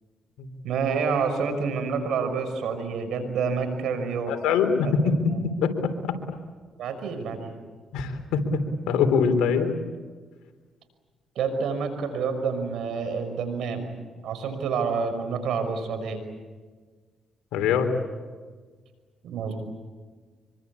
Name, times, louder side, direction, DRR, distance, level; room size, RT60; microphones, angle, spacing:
voice 1, 0.6-4.3 4.8-5.0 5.3-5.4 6.8-7.5 11.4-13.9 14.2-16.2 19.2-19.6, right 5 dB, 80° right, 8 dB, 5.6 m, -28 dB
voice 2, 4.3-5.7 6.1-6.2 7.9-8.4 8.9-9.7 17.5-17.9, left 6 dB, 90° left, 6 dB, 3.6 m, -23 dB
26.5 x 23.5 x 8.5 m, 1.5 s
cardioid pair, 75°, 0 cm